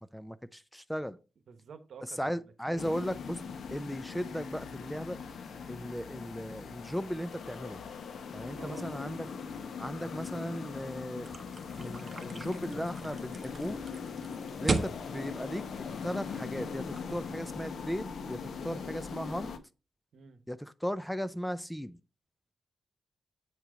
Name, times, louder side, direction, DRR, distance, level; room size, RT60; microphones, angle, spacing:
voice 1, 0.1-1.2 2.1-3.4 3.7-5.2 5.7-7.8 8.3-9.3 9.8-11.3 11.8-13.8 14.6-15.7 16.0-18.4 18.6-19.5 20.5-22.0, equal, 5° left, 0.4 m, -36 dB
voice 2, 1.5-3.0 8.6-8.9 20.1-20.4, right 6 dB, 70° right, 1.2 m, -50 dB
sound 1, 2.8-19.6, left 6 dB, 70° left, 1.0 m, -41 dB
sound 2, 11.2-16.6, right 3 dB, 35° right, 1.2 m, -37 dB
8.2 x 4.5 x 4.9 m
cardioid pair, 110°, 0 cm